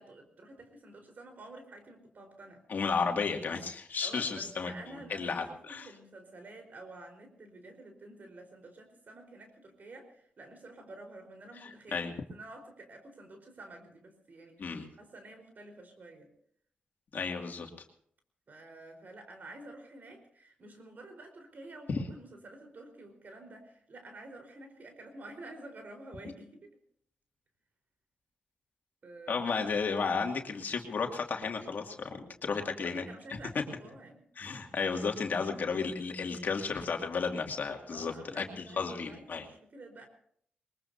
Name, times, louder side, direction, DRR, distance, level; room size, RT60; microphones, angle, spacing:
voice 1, 0.0-2.6 4.0-16.3 18.5-26.8 29.0-29.6 32.5-34.2 37.9-40.1, right 2 dB, 60° right, 4 dB, 4.6 m, -50 dB
voice 2, 2.7-5.9 11.9-12.1 14.6-14.9 17.1-17.7 21.9-22.0 29.3-33.1 34.4-39.4, left 5 dB, 65° left, 3 dB, 2.5 m, -33 dB
22.0 x 21.0 x 2.8 m, 0.64 s
supercardioid pair, 50°, 3 cm